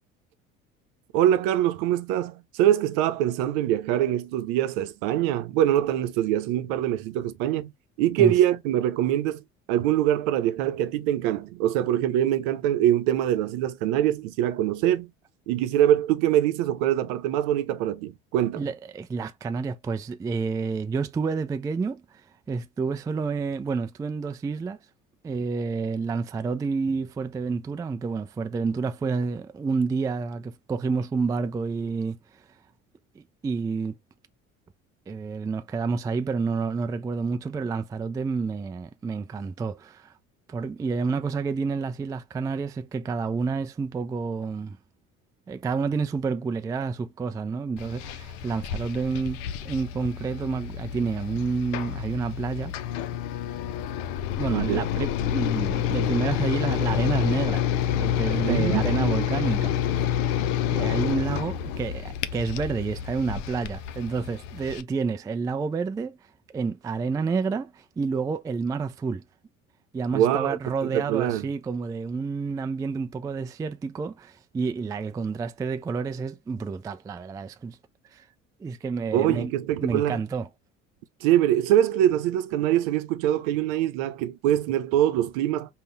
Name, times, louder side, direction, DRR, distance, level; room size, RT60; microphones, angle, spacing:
voice 1, 1.1-7.7 8.0-9.4 9.7-15.1 15.5-18.7 54.5-54.9 58.4-59.3 70.1-71.5 79.1-80.2 81.2-85.7, right 12 dB, 60° right, 0.8 m, -24 dB
voice 2, 18.5-22.2 22.5-24.8 25.2-32.2 33.4-34.0 35.1-40.1 40.5-44.8 45.5-52.7 54.4-57.6 58.0-59.8 60.6-66.2 66.5-69.2 69.9-77.8 78.1-78.2 78.6-79.5 79.8-80.5, right 4 dB, 10° right, 0.3 m, -29 dB
sound 1, 47.8-64.8, left 10 dB, 65° left, 0.7 m, -28 dB
5.3 x 2.4 x 3.2 m
figure-of-eight pair, 60°, 40 cm